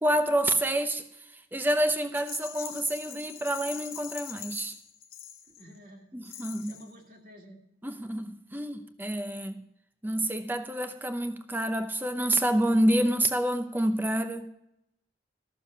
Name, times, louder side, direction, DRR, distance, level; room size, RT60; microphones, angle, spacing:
voice 1, 0.0-1.0 1.5-4.7 6.1-6.8 7.8-9.6 10.0-14.5, right 1 dB, 10° right, 0.7 m, -28 dB
Rattle, 2.1-5.8 6.2-6.9, left 9 dB, 50° left, 0.9 m, -43 dB
voice 2, 5.4-7.6, equal, 50° right, 2.0 m, -52 dB
13.5 x 6.9 x 5.4 m
head